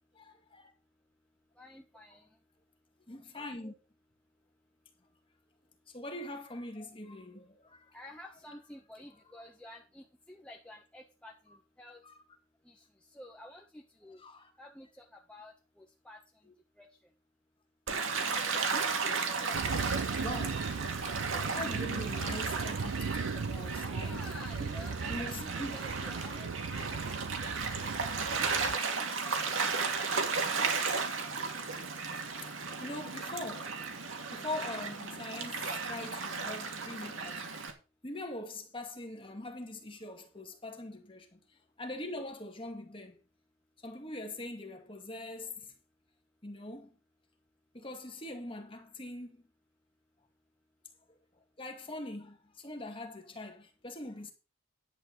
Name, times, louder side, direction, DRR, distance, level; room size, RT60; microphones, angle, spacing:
voice 1, 0.1-0.7 3.1-3.7 5.9-7.9 11.5-11.6 12.0-12.2 14.2-14.5 16.4-16.5 20.2-20.7 21.4-24.3 25.1-25.8 32.8-33.8 34.3-37.5 38.0-41.4 41.8-43.2 43.8-45.7 46.4-47.0 47.7-49.4 51.6-54.3, left 2 dB, 25° left, 2.1 m, -42 dB
voice 2, 1.6-2.2 7.9-11.3 11.8-12.0 12.7-12.8 13.1-14.2 14.6-16.2 16.8-16.9 23.7-28.0 28.9-29.1, left 1 dB, 5° left, 1.3 m, -51 dB
Gull seagull / Waves surf, 17.9-37.7, right 4 dB, 65° right, 2.2 m, -35 dB
sound 1, 19.5-28.7, right 5 dB, 85° right, 0.5 m, -37 dB
11.0 x 4.6 x 7.9 m
head